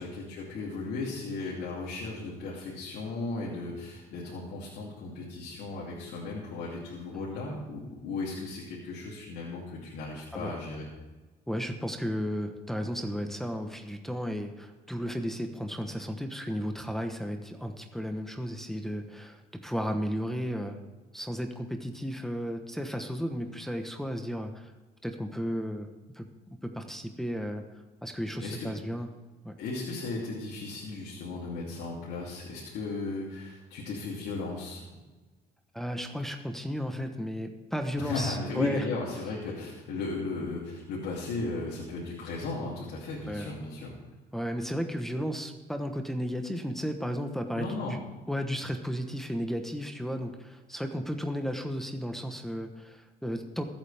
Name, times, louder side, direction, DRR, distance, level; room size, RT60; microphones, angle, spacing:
voice 1, 0.0-10.9 28.4-28.7 29.6-34.8 38.0-43.9 47.5-48.0, left 3 dB, 80° left, -5 dB, 3.0 m, -36 dB
voice 2, 11.5-20.8 21.1-24.7 25.0-25.9 26.1-26.3 26.6-27.6 28.0-29.1 29.4-29.5 35.7-38.9 43.3-43.5 44.3-48.0 48.3-53.6, equal, ahead, 4 dB, 1.2 m, -34 dB
22.0 x 8.8 x 3.5 m, 1.2 s
cardioid pair, 110°, 17 cm